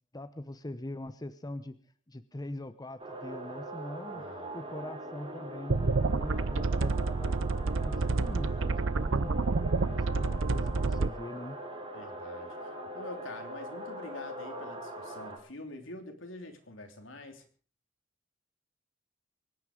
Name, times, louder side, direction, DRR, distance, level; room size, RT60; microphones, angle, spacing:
voice 1, 0.1-1.8 2.1-4.3 4.5-9.3 9.8-11.6, left 1 dB, 20° left, 11 dB, 0.8 m, -42 dB
sound 1, 3.0-15.4, right 1 dB, 30° right, 4.6 m, -42 dB
voice 2, 4.1-4.5 11.9-17.5, left 2 dB, 80° left, 5 dB, 3.2 m, -46 dB
sound 2, 5.7-11.1, right 3 dB, 80° right, 0.7 m, -29 dB
24.5 x 9.8 x 5.1 m, 0.39 s
head